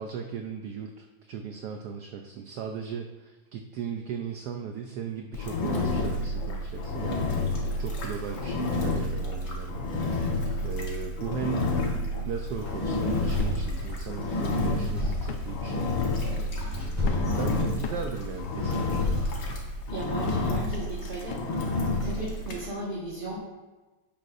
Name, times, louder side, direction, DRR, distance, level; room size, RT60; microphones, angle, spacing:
voice 1, 0.0-7.3 7.8-10.0 10.6-11.7 12.2-15.9 17.0-19.2, right 6 dB, 70° right, 4 dB, 1.0 m, -37 dB
Engine, 5.3-22.6, left 2 dB, 85° left, 2.0 m, -30 dB
sound 1, 12.3-19.7, left 2 dB, 10° left, 2.2 m, -34 dB
sound 2, 13.4-13.6 14.1-14.2 15.3-15.6 15.9-16.1 17.1-17.3 17.8-18.1 18.7-19.0 19.5-19.7 20.3-20.5 21.3-21.6 22.3-22.4, left 6 dB, 70° left, 1.2 m, -41 dB
voice 2, 17.1-17.5 19.9-21.4 22.0-23.4, right 1 dB, 30° right, -6 dB, 1.4 m, -36 dB
10.5 x 5.9 x 2.5 m, 1.2 s
omnidirectional pair, 2.1 m